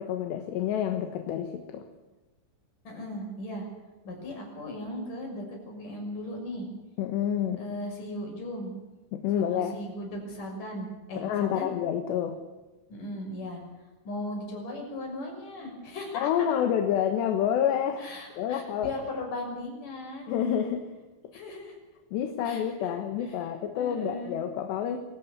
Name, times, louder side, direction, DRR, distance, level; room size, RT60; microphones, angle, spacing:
voice 1, 0.0-1.9 7.0-7.6 9.1-9.8 11.2-12.4 16.1-18.1 18.4-18.9 20.3-20.9 22.1-25.0, left 9 dB, 75° left, 6 dB, 3.5 m, -28 dB
voice 2, 2.8-3.7 4.0-6.7 7.6-8.7 9.3-11.7 12.9-13.6 14.0-16.3 18.0-20.4 21.3-21.8 22.4-23.0 23.3-23.4 23.7-24.3, left 1 dB, 45° left, 1 dB, 7.6 m, -37 dB
25.5 x 17.5 x 8.3 m, 1.1 s
omnidirectional pair, 5.2 m